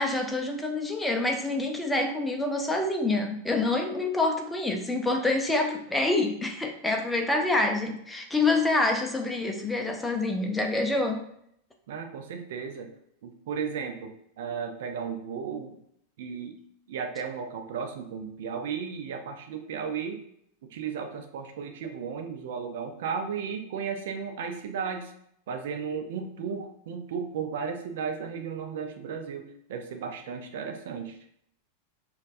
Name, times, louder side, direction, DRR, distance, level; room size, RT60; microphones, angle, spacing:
voice 1, 0.0-11.2, left 2 dB, 5° left, 3 dB, 0.6 m, -27 dB
voice 2, 11.9-12.9 13.2-15.8 16.2-16.6 16.9-20.2 20.7-25.1 25.5-31.2, right 6 dB, 55° right, 5 dB, 0.5 m, -34 dB
5.1 x 2.4 x 2.5 m, 0.72 s
figure-of-eight pair, 90°, 0 cm